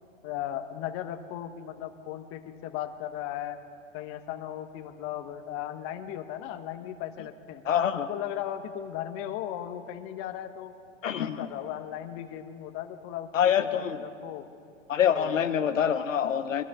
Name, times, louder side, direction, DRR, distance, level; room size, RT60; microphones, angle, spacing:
voice 1, 0.2-3.6 3.9-7.6 7.9-10.7 11.1-14.4 15.1-15.3, left 11 dB, 35° left, 7 dB, 1.1 m, -37 dB
voice 2, 7.6-8.1 11.0-11.5 13.3-14.0 14.9-16.6, left 8 dB, 80° left, 9 dB, 0.8 m, -25 dB
23.5 x 13.5 x 3.6 m, 2.4 s
hypercardioid pair, 110°, 39 cm